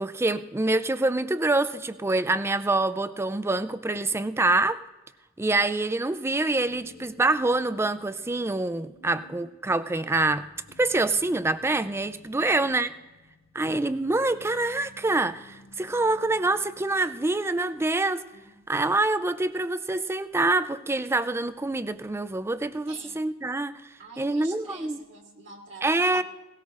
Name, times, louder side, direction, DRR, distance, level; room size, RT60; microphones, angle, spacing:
voice 1, 0.0-4.8 5.4-10.5 10.8-12.9 13.5-18.2 18.7-23.9 24.2-25.0 25.8-26.2, right 2 dB, 10° right, 12 dB, 0.4 m, -26 dB
sound 1, 6.6-18.6 18.9-19.0, left 2 dB, 80° left, 1.6 m, -55 dB
voice 2, 8.9-9.3 12.3-12.7 18.3-18.6 22.9-23.2 24.0-26.2, right 3 dB, 55° right, 0 dB, 2.0 m, -47 dB
18.0 x 17.5 x 2.5 m, 1.1 s
head